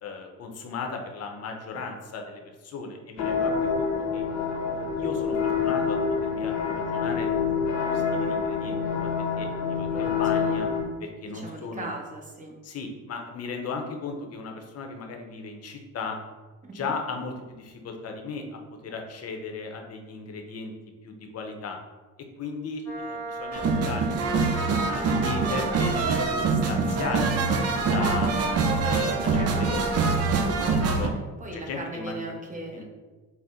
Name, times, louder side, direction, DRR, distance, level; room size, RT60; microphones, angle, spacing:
voice 1, 0.0-4.2 4.8-6.0 6.3-7.3 7.9-9.1 9.4-10.7 11.0-11.9 12.6-16.2 16.7-20.7 21.0-21.8 22.4-27.6 27.9-28.3 28.8-30.2 30.7-31.1 31.5-32.3 32.7-32.8, left 4 dB, 55° left, 3 dB, 0.7 m, -36 dB
sound 1, 3.2-10.8, left 5 dB, 85° left, 0.8 m, -27 dB
voice 2, 9.9-10.6 11.3-12.6 16.8-16.9 28.0-28.1 31.4-32.8, right 1 dB, 25° right, 0 dB, 0.9 m, -38 dB
Wind instrument woodwind instrument, 22.9-30.9, right 3 dB, 10° left, 0.8 m, -36 dB
sound 2, 23.5-31.1, right 4 dB, 55° right, 0.6 m, -25 dB
4.1 x 2.1 x 3.6 m, 1.2 s
cardioid pair, 90°, 30 cm